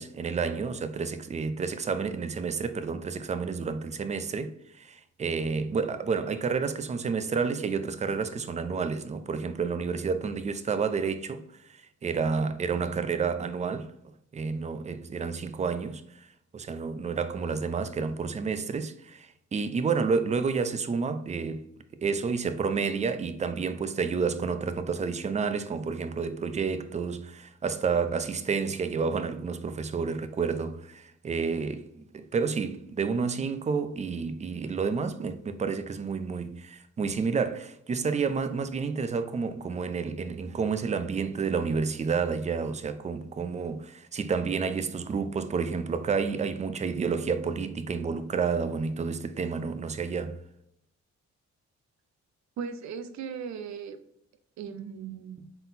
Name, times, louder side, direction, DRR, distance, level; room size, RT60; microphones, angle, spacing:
voice 1, 0.0-11.4 12.0-13.9 14.3-16.0 16.5-21.6 22.0-31.8 32.1-50.4, right 5 dB, 25° right, 0.4 m, -30 dB
voice 2, 52.6-54.0 54.6-55.4, right 6 dB, 65° right, 0.6 m, -37 dB
3.9 x 3.8 x 2.6 m
cardioid pair, 90°, 30 cm